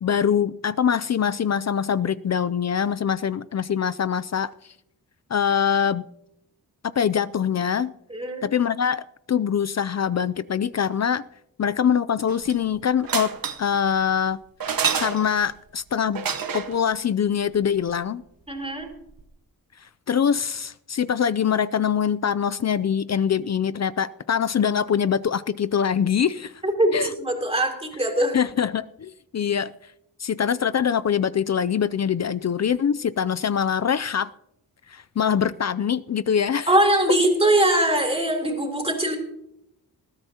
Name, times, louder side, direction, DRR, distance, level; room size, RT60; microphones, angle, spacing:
voice 1, 0.0-4.5 5.3-6.1 7.0-7.9 8.4-11.3 11.6-14.4 15.0-16.3 16.5-18.2 20.1-26.5 26.9-27.1 28.3-29.7 30.2-34.3 34.9-36.7, left 8 dB, 45° left, 0.4 m, -23 dB
voice 2, 8.1-8.4 18.5-18.9 26.6-28.4 36.7-39.2, right 1 dB, 15° right, 3.4 m, -21 dB
sound 1, 12.3-12.7 13.0-13.8 14.6-15.5 16.1-16.8 18.9-19.0 19.2-19.3, right 6 dB, 65° right, 1.1 m, -27 dB
20.5 x 13.5 x 2.9 m
wide cardioid pair, 95°, 38 cm